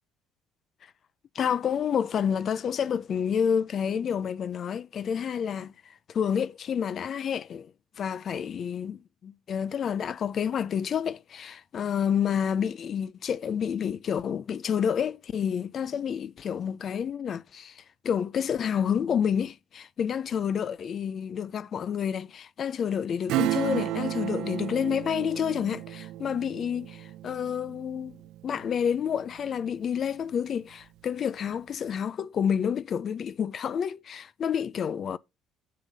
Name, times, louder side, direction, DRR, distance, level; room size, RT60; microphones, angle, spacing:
voice 1, 1.3-7.7 8.0-28.2 28.4-35.2, left 8 dB, 40° left, 0.4 m, -29 dB
Acoustic guitar / Strum, 23.3-29.5 29.9-30.0, right 15 dB, 75° right, 0.6 m, -33 dB
7.5 x 7.2 x 4.0 m
cardioid pair, 125°, 0 cm